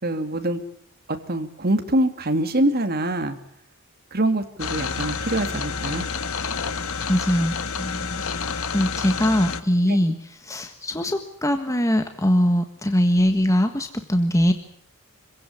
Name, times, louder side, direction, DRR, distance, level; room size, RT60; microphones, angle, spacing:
voice 1, 0.0-0.6 1.3-3.4 4.1-6.1 9.9-10.0, right 1 dB, 45° right, 7 dB, 2.6 m, -24 dB
sound 1, 4.6-9.6, left 5 dB, 70° left, 1.5 m, -29 dB
voice 2, 7.1-8.2 8.7-14.5, equal, 15° left, 6 dB, 1.5 m, -22 dB
26.0 x 16.5 x 9.8 m, 0.67 s
head